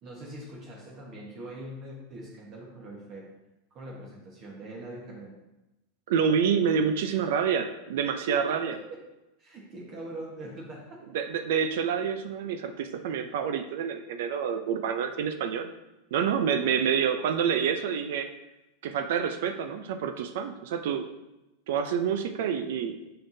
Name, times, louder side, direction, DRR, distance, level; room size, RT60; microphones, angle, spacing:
voice 1, 0.0-3.3 3.7-5.4 8.3-9.0 9.4-11.1 16.4-16.6, right 1 dB, 35° right, -3 dB, 1.3 m, -42 dB
voice 2, 6.1-8.7 11.1-15.7 16.1-18.3 18.8-21.1 21.7-23.0, right 7 dB, 70° right, 8 dB, 0.5 m, -27 dB
6.7 x 5.8 x 2.7 m, 0.96 s
supercardioid pair, 140°, 0 cm